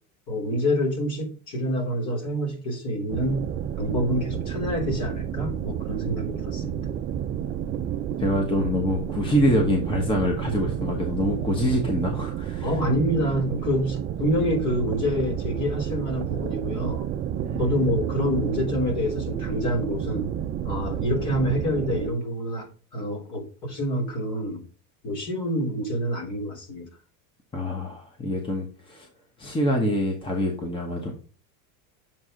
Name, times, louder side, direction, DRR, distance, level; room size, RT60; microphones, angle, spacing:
voice 1, 0.3-6.8 12.6-17.1 17.6-20.3 20.6-24.6 25.0-26.9, equal, 45° left, 3.4 m, -27 dB
sound 1, 3.1-22.1, right 9 dB, 25° right, 0.3 m, -30 dB
voice 2, 8.2-12.7 17.4-17.7 27.5-29.1 29.4-31.1, left 1 dB, 10° left, 1.2 m, -25 dB
7.3 x 4.8 x 3.7 m
supercardioid pair, 135°, 42 cm